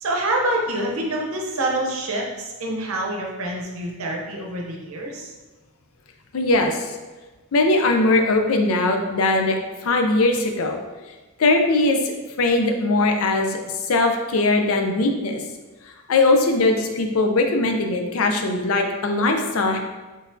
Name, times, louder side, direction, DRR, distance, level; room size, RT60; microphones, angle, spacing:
voice 1, 0.0-5.3, right 1 dB, 75° right, 0 dB, 0.7 m, -26 dB
voice 2, 6.3-6.9 7.5-10.8 11.4-12.0 12.4-15.4 16.1-19.8, left 2 dB, 70° left, 4 dB, 0.5 m, -20 dB
4.2 x 3.3 x 2.6 m, 1.2 s
head